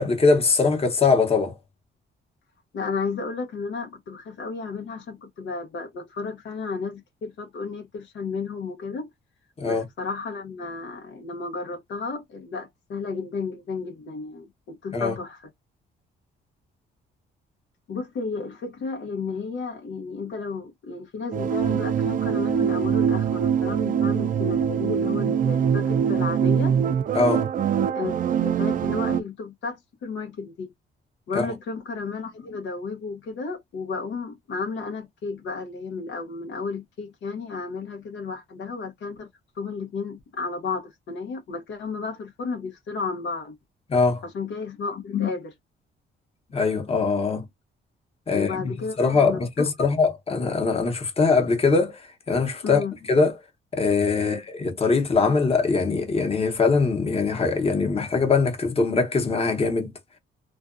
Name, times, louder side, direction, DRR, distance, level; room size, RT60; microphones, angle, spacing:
voice 1, 0.0-1.5 9.6-9.8 14.9-15.1 27.1-27.5 31.3-31.5 43.9-44.2 46.5-47.4 48.3-48.7 49.0-52.0 52.3-53.4 53.7-59.9, left 4 dB, 30° left, 1.0 m, -22 dB
voice 2, 2.7-9.1 9.6-15.4 17.9-26.7 27.9-30.7 31.3-39.3 39.6-43.6 44.2-45.5 48.3-49.9 52.6-52.9 54.2-54.4, left 4 dB, 65° left, 0.8 m, -33 dB
sound 1, 21.3-29.2, right 8 dB, 45° right, 0.4 m, -23 dB
2.5 x 2.2 x 2.4 m
cardioid pair, 90°, 20 cm